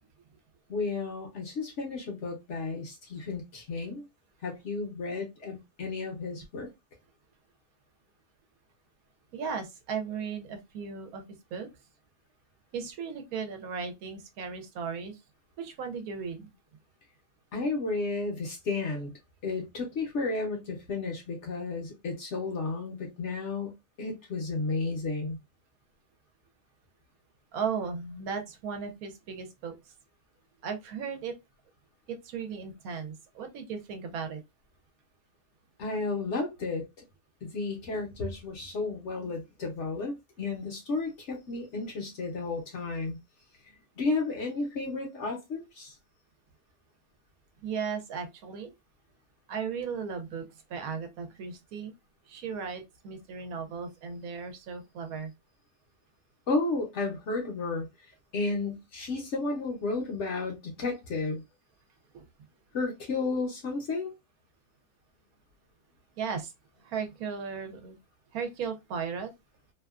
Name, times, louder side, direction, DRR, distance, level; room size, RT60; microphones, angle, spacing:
voice 1, 0.7-4.0 4.4-6.7 17.5-19.1 19.4-25.4 35.8-36.8 37.4-43.2 44.0-45.9 56.5-57.9 58.3-61.4 62.7-64.1, left 3 dB, 60° left, 0.9 m, -32 dB
voice 2, 9.3-11.2 11.5-11.7 12.7-15.2 15.6-16.5 27.5-29.7 30.6-31.3 32.1-34.4 47.6-48.7 49.5-51.9 52.3-55.3 62.1-62.2 66.2-66.5 66.8-68.0 68.3-69.3, right 6 dB, 75° right, 1.0 m, -36 dB
2.7 x 2.2 x 2.3 m
omnidirectional pair, 1.6 m